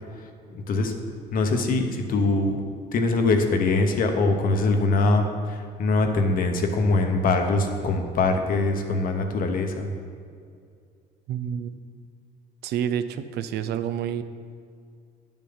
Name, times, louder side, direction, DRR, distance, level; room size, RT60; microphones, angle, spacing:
voice 1, 0.5-0.9 1.3-2.6 2.9-9.9, left 3 dB, 55° left, 5 dB, 1.1 m, -23 dB
voice 2, 11.3-11.8 12.6-14.2, right 9 dB, 75° right, 11 dB, 0.5 m, -28 dB
10.5 x 7.1 x 4.0 m, 2.2 s
cardioid pair, 110°, 17 cm